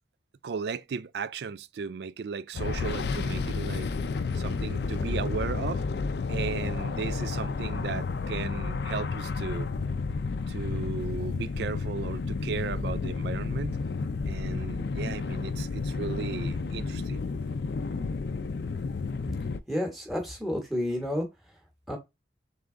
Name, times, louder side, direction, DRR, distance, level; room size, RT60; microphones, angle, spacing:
voice 1, 0.4-3.9 4.3-5.8 6.3-9.7 10.5-13.8 14.3-17.2, right 5 dB, 65° right, 0.3 m, -35 dB
sound 1, 2.6-19.6, left 4 dB, 65° left, 0.4 m, -31 dB
voice 2, 19.7-21.3 21.9-22.0, left 1 dB, ahead, 1.1 m, -30 dB
3.8 x 3.4 x 3.6 m
head